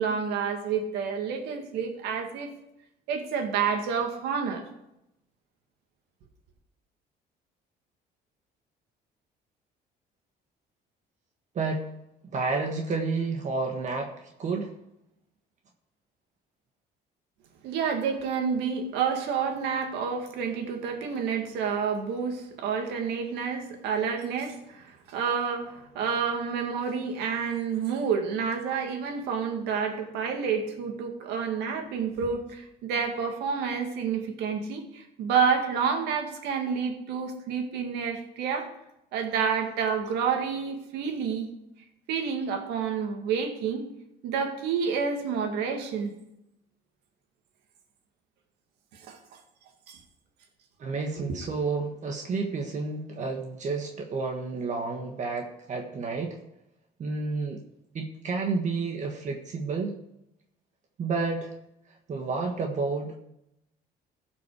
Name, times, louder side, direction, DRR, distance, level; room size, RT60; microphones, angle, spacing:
voice 1, 0.0-2.5 3.1-4.7 17.6-38.7 39.1-41.5 42.1-43.9 44.2-46.1 48.9-49.2 49.9-50.0 51.2-51.3, right 6 dB, 90° right, 4 dB, 2.1 m, -29 dB
voice 2, 11.5-11.9 12.3-14.7 50.8-56.4 57.0-57.6 57.9-59.9 61.0-61.5 62.1-63.2, right 4 dB, 45° right, 2 dB, 1.5 m, -30 dB
16.5 x 6.0 x 4.9 m, 0.84 s
cardioid pair, 110°, 17 cm